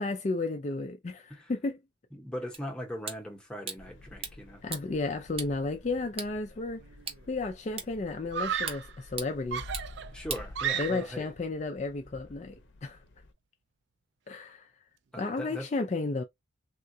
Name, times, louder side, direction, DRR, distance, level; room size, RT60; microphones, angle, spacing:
voice 1, 0.0-1.8 4.6-6.8 7.3-9.6 10.8-12.6 12.8-13.0 14.3-14.7 15.2-16.2, left 3 dB, 35° left, 0.4 m, -33 dB
voice 2, 2.1-4.6 10.1-11.3 15.1-15.7, equal, 5° left, 0.8 m, -39 dB
sound 1, 2.5-11.1, right 5 dB, 30° right, 0.7 m, -44 dB
Howling Wind Ambience, 3.8-13.3, left 1 dB, 70° left, 0.7 m, -50 dB
Screaming, 6.8-7.2 8.3-9.0 9.5-11.2, right 8 dB, 65° right, 0.4 m, -34 dB
3.6 x 2.2 x 2.6 m
head